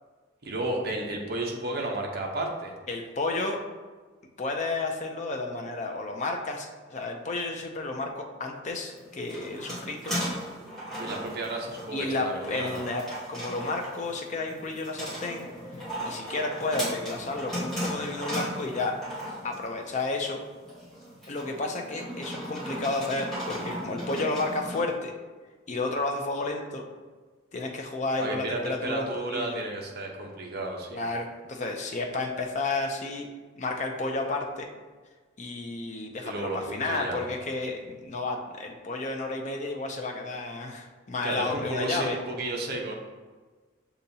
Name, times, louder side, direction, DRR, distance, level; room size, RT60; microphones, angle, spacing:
voice 1, 0.4-2.7 11.0-12.8 28.2-31.0 36.2-37.3 41.2-42.9, right 2 dB, 50° right, 0 dB, 0.7 m, -33 dB
voice 2, 2.9-3.6 4.4-10.2 11.9-15.5 16.1-19.0 19.4-20.4 21.3-25.1 25.7-26.8 27.5-29.6 30.9-33.3 33.6-34.7 35.4-42.2, left 2 dB, 35° left, 2 dB, 0.5 m, -31 dB
sound 1, 8.9-24.8, equal, ahead, 1.2 m, -37 dB
6.7 x 2.8 x 2.7 m, 1.4 s
head